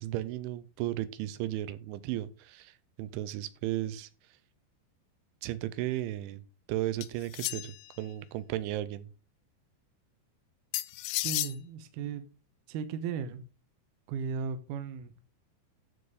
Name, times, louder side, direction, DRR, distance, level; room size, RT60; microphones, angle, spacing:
voice 1, 0.0-4.1 5.4-6.4 6.7-9.1, right 14 dB, 90° right, 14 dB, 3.1 m, -35 dB
sound 1, 7.0-7.9 10.7-11.6, left 19 dB, 85° left, 2.9 m, -33 dB
voice 2, 11.2-12.2 12.7-13.4 14.1-15.2, right 6 dB, 70° right, 9 dB, 2.7 m, -36 dB
14.0 x 4.7 x 4.9 m, 0.33 s
omnidirectional pair, 5.3 m